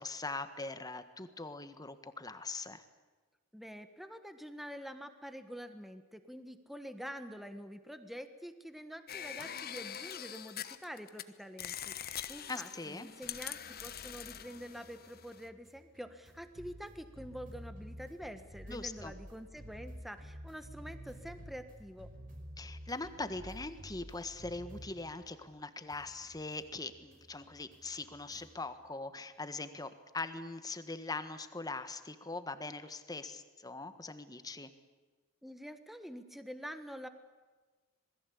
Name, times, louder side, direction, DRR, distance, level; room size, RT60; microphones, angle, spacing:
voice 1, 0.0-2.8 12.5-13.1 18.7-19.1 22.6-34.7, left 3 dB, 20° left, 10 dB, 1.5 m, -41 dB
voice 2, 3.5-22.1 35.4-37.1, equal, ahead, 9 dB, 1.3 m, -47 dB
Mechanism Glitch Sequence, 9.1-11.2 11.6-15.5, left 9 dB, 45° left, 1.2 m, -44 dB
sound 1, 13.3-25.6 25.9-28.7, equal, 40° right, 5.4 m, -52 dB
27.0 x 21.0 x 8.5 m, 1.3 s
head